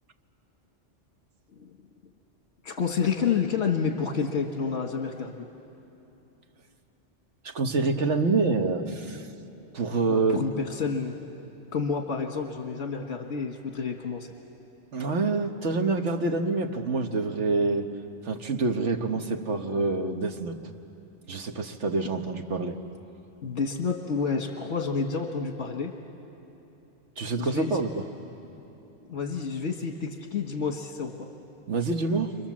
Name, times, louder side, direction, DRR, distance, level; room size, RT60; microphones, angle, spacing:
voice 1, 2.6-5.3 10.1-11.2 11.7-14.3 23.4-25.9 27.4-27.8 29.1-31.3, left 5 dB, 70° left, 3 dB, 1.6 m, -29 dB
voice 2, 7.4-9.3 9.7-10.4 14.9-17.9 18.2-20.5 21.3-22.8 27.2-28.0 31.7-32.3, right 3 dB, 80° right, 5 dB, 1.6 m, -26 dB
29.0 x 26.0 x 7.4 m, 2.9 s
omnidirectional pair, 1.2 m